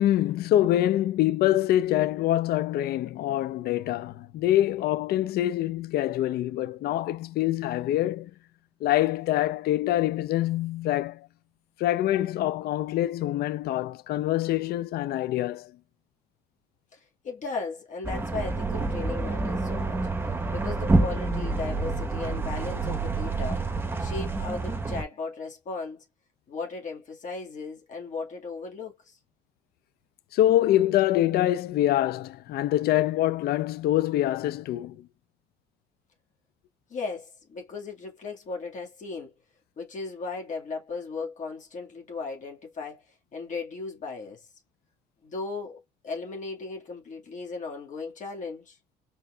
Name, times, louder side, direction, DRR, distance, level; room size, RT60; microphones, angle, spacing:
voice 1, 0.0-8.3 8.8-11.3 11.8-15.7 30.3-35.1, left 13 dB, 65° left, 0.5 m, -25 dB
voice 2, 16.9-20.0 20.5-23.7 24.0-26.1 26.5-29.2 36.9-39.3 39.8-44.5 45.2-48.8, left 4 dB, 50° left, 1.8 m, -36 dB
sound 1, 18.0-25.0, right 3 dB, 15° right, 1.0 m, -28 dB
4.2 x 3.7 x 2.3 m
cardioid pair, 110°, 17 cm